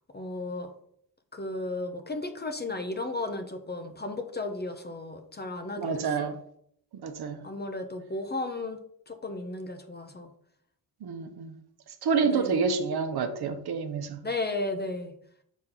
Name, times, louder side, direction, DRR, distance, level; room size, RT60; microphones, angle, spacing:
voice 1, 0.1-0.7 1.3-6.4 7.4-8.8 9.1-10.3 12.2-12.6 14.2-15.1, left 2 dB, 20° left, 6 dB, 0.8 m, -34 dB
voice 2, 5.8-6.4 7.0-7.4 11.0-11.6 12.0-14.2, right 5 dB, 55° right, 7 dB, 1.0 m, -28 dB
6.2 x 4.2 x 3.9 m, 0.67 s
cardioid pair, 85°, 46 cm